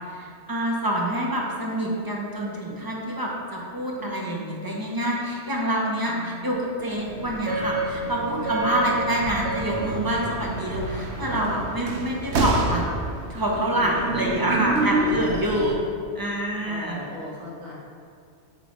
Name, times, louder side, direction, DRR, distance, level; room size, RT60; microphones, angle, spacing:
voice 1, 0.1-12.8 13.3-17.0, right 1 dB, 25° right, -2 dB, 0.6 m, -26 dB
voice 2, 3.9-4.8 6.0-6.6 13.8-15.7 16.6-17.7, left 1 dB, 40° right, -6 dB, 1.3 m, -40 dB
sound 1, 6.6-7.0 9.2-11.8, equal, 35° left, 1.5 m, -37 dB
sound 2, 6.9-15.8, right 2 dB, 70° right, 0.9 m, -28 dB
7.5 x 3.1 x 4.2 m, 2.3 s
omnidirectional pair, 1.2 m